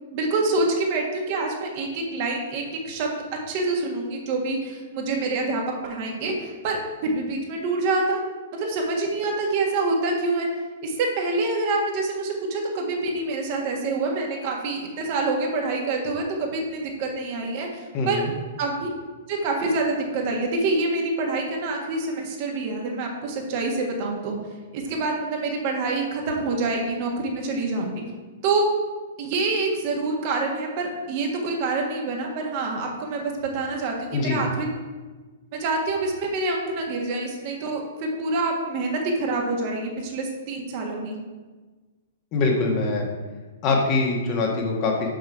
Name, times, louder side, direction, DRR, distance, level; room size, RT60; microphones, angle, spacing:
voice 1, 0.1-3.2 3.5-8.2 8.5-10.5 10.8-18.2 18.6-18.9 19.3-24.3 24.7-28.0 28.4-28.6 29.2-34.7 35.5-41.2, right 3 dB, 40° right, 0 dB, 1.6 m, -26 dB
voice 2, 17.9-18.3 34.1-34.4 42.3-43.0 43.6-45.1, left 3 dB, 35° left, 0 dB, 1.6 m, -23 dB
6.5 x 6.3 x 4.7 m, 1.3 s
figure-of-eight pair, 110°, 0 cm